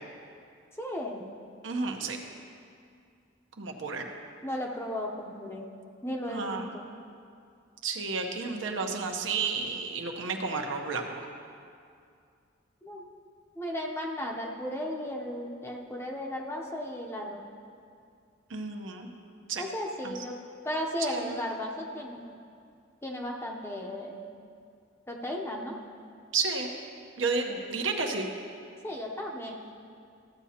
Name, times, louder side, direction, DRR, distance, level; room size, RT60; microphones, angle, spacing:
voice 1, 0.8-1.2 4.4-5.6 6.0-6.8 12.8-13.0 13.6-17.4 19.6-20.4 20.6-22.4 23.0-24.2 25.1-25.8 27.5-27.6 28.8-29.8, left 1 dB, 15° left, 0 dB, 0.7 m, -35 dB
voice 2, 1.6-2.2 3.6-4.0 6.3-6.7 7.8-11.3 18.5-19.1 19.5-19.6 20.0-20.1 21.1-21.3 26.3-26.7 27.2-28.3, right 4 dB, 75° right, 3 dB, 0.9 m, -31 dB
14.0 x 8.3 x 2.8 m, 2.3 s
head